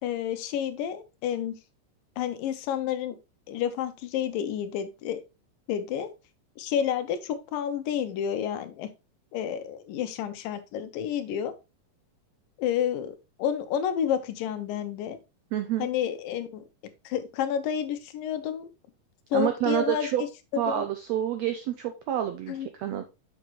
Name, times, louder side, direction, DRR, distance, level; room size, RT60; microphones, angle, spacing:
voice 1, 0.0-1.6 2.2-3.2 3.5-5.2 5.7-6.1 6.6-8.9 9.3-11.5 12.6-15.2 15.8-16.6 17.1-18.7 19.3-20.1 20.5-20.8 22.5-22.7, left 9 dB, 90° left, 9 dB, 2.5 m, -30 dB
voice 2, 15.5-15.9 19.3-20.2 20.6-23.0, right 11 dB, 90° right, 7 dB, 1.5 m, -28 dB
7.0 x 6.3 x 3.0 m, 0.27 s
omnidirectional pair, 3.8 m